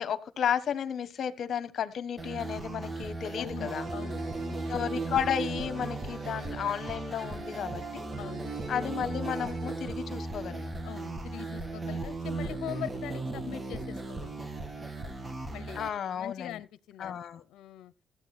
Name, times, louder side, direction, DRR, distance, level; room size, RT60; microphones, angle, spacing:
voice 1, 0.0-3.9 4.7-8.0 8.7-10.8 15.7-16.6 17.0-17.4, left 8 dB, 60° left, 1.3 m, -33 dB
sound 1, 2.2-15.9, right 3 dB, 25° right, 2.2 m, -36 dB
voice 2, 3.3-4.7 8.2-8.5 10.8-14.8 15.5-15.8 16.1-17.9, left 12 dB, 85° left, 0.6 m, -43 dB
sound 2, 3.6-10.6, right 2 dB, 60° right, 6.3 m, -44 dB
15.0 x 8.7 x 4.3 m
cardioid pair, 90°, 0 cm